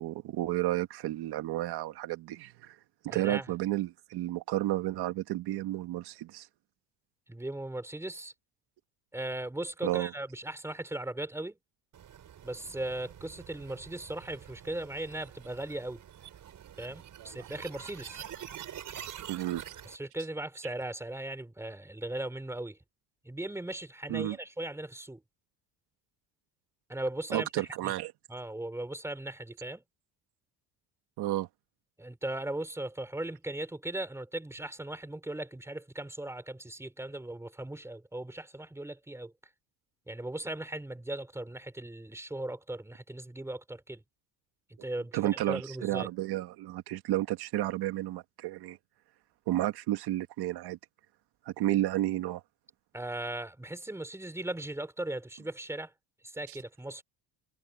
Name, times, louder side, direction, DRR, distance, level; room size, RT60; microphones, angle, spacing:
voice 1, 0.0-2.8 3.0-6.5 9.8-10.1 17.2-17.3 19.3-19.6 24.1-24.4 27.3-28.1 31.2-31.5 45.1-48.8 49.5-50.8 51.5-52.4 56.5-56.6, right 15 dB, 70° right, 1.9 m, -32 dB
voice 2, 3.1-3.5 7.3-8.3 9.1-11.6 12.4-16.0 16.8-18.2 19.9-22.8 23.2-25.2 26.9-27.9 28.3-29.8 32.0-39.3 40.1-44.0 44.7-45.2 45.5-46.1 52.9-55.9 56.2-57.0, right 1 dB, 5° right, 3.9 m, -38 dB
sound 1, 11.9-20.0, right 10 dB, 50° right, 5.0 m, -47 dB
cardioid pair, 120°, 40 cm